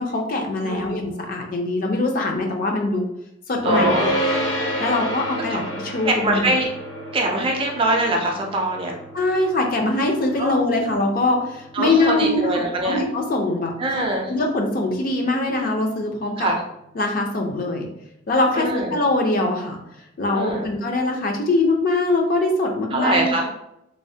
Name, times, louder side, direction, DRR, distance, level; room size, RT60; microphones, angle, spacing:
voice 1, 0.0-3.1 3.5-3.9 4.8-6.5 9.1-14.0 14.3-16.5 17.0-17.9 18.3-19.8 20.2-23.3, left 2 dB, 45° left, 2 dB, 0.4 m, -22 dB
sound 1, 3.6-15.0, equal, 70° left, 0.8 m, -30 dB
voice 2, 3.6-4.1 6.0-6.7 7.1-9.0 10.4-10.6 11.7-13.0 13.8-14.3 16.4-16.6 18.5-19.0 20.3-20.7 22.9-23.5, right 2 dB, 30° right, 1 dB, 0.4 m, -23 dB
3.2 x 2.1 x 2.6 m, 0.83 s
head